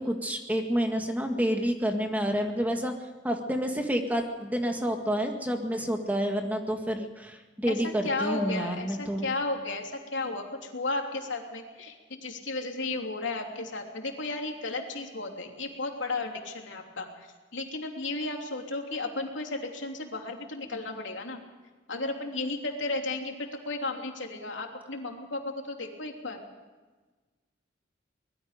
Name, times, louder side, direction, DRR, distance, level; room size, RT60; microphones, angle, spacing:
voice 1, 0.0-2.9 3.2-9.3, equal, 10° right, 3 dB, 1.9 m, -29 dB
voice 2, 7.7-21.4 21.9-26.4, left 2 dB, 80° left, 2 dB, 3.2 m, -34 dB
24.5 x 20.5 x 5.2 m, 1.3 s
head